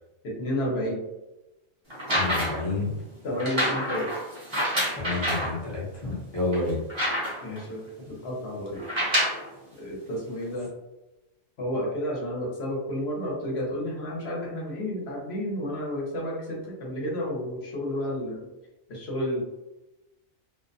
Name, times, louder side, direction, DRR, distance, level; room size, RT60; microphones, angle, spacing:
voice 1, 0.2-1.0 3.2-4.1 7.4-8.9 9.8-10.7 11.6-18.5 18.9-19.4, equal, 55° left, -3 dB, 0.9 m, -31 dB
sound 1, 1.9-2.7 3.4-5.6 6.1-6.2 6.5-7.6 8.8-9.5 10.4-10.5, equal, 25° right, 0.7 m, -27 dB
voice 2, 2.1-3.0 4.9-6.8, left 3 dB, 25° left, -6 dB, 0.6 m, -29 dB
2.5 x 2.1 x 2.5 m, 0.98 s
omnidirectional pair, 1.4 m